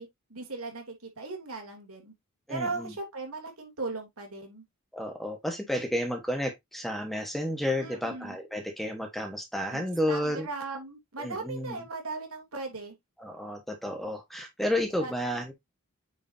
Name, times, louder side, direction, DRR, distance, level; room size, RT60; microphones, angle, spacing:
voice 1, 0.0-2.1 2.5-4.6 7.8-8.4 9.7-12.9 15.0-15.1, right 3 dB, 80° right, 3.2 m, -38 dB
voice 2, 2.5-2.9 4.9-10.5 11.2-11.8 13.2-15.5, left 1 dB, ahead, 1.4 m, -31 dB
9.2 x 4.9 x 2.8 m
head